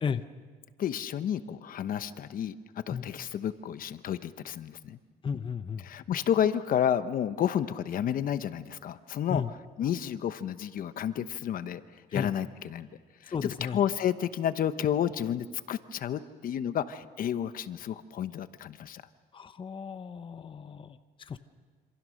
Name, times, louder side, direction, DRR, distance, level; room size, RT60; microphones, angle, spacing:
voice 1, 0.8-2.6 2.9-5.0 5.8-9.4 9.8-12.9 13.2-13.3 13.6-19.0, left 9 dB, 55° left, 12 dB, 1.0 m, -31 dB
voice 2, 5.2-5.9 9.3-9.5 12.1-12.3 13.3-13.8 19.3-21.4, left 6 dB, 30° left, 11 dB, 0.9 m, -34 dB
27.0 x 26.5 x 6.5 m, 1.5 s
cardioid pair, 110°, 17 cm